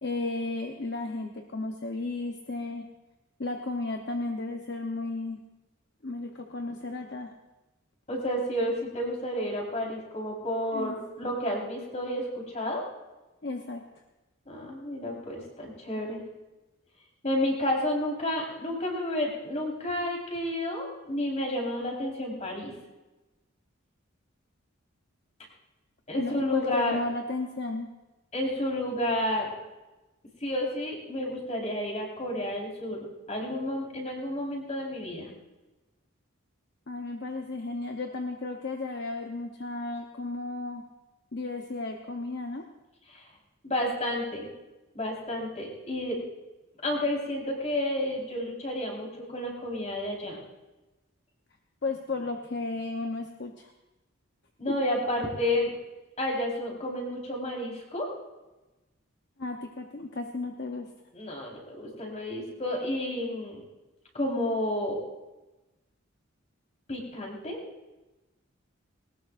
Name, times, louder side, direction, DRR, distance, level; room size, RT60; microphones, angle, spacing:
voice 1, 0.0-2.8 3.4-5.4 6.0-7.3 10.7-11.0 13.4-13.8 26.2-27.9 36.9-40.8 41.3-42.6 51.8-53.7 59.4-60.9, left 2 dB, 55° left, 4 dB, 0.9 m, -34 dB
voice 2, 8.1-12.8 14.5-16.2 17.2-22.7 26.1-27.0 28.3-29.5 30.4-35.3 43.1-43.2 43.6-44.5 44.9-46.2 46.8-50.4 54.6-55.7 56.2-58.1 61.1-63.6 64.1-65.0 66.9-67.6, left 1 dB, 35° left, -2 dB, 4.3 m, -31 dB
20.5 x 19.0 x 2.6 m, 1.1 s
head